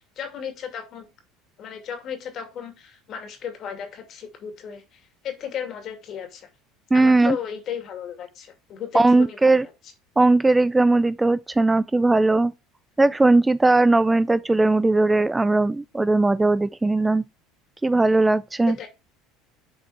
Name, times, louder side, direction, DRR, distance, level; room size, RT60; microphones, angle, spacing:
voice 1, 0.2-1.0 1.6-6.5 6.9-9.6 18.7-18.9, left 8 dB, 50° left, 2.4 m, -35 dB
voice 2, 6.9-7.4 8.9-9.7 10.2-12.5 13.0-17.2 17.8-18.8, right 2 dB, 10° right, 0.3 m, -18 dB
7.4 x 4.4 x 4.8 m
supercardioid pair, 90°, 0 cm